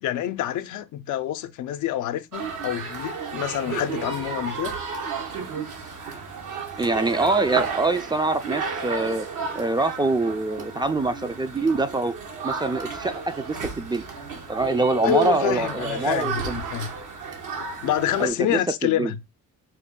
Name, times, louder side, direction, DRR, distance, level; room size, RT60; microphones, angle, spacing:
voice 1, 0.0-4.7 15.0-16.9 17.8-19.2, left 12 dB, 80° left, 0.5 m, -27 dB
sound 1, 2.3-18.3, right 5 dB, 80° right, 1.1 m, -33 dB
voice 2, 6.8-9.3 9.6-12.1 12.4-14.0 14.5-16.6 18.2-19.1, right 2 dB, 15° right, 0.3 m, -24 dB
4.3 x 2.1 x 3.6 m
cardioid pair, 90°, 30 cm